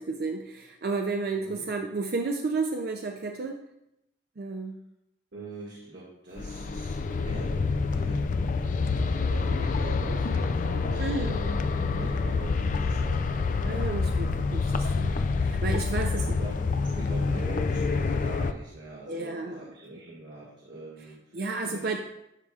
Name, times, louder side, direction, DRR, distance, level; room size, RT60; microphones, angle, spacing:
voice 1, 0.0-3.6 4.4-4.8 11.0-11.4 13.6-16.3 19.1-19.7 21.3-22.0, right 3 dB, 55° right, 3 dB, 0.5 m, -32 dB
voice 2, 1.3-1.6 5.3-7.7 7.9-13.9 16.0-21.3 21.6-22.0, right 2 dB, 70° right, -7 dB, 1.7 m, -43 dB
sound 1, 6.4-18.5, left 4 dB, 45° left, 0.3 m, -27 dB
12.0 x 4.8 x 2.4 m, 0.83 s
head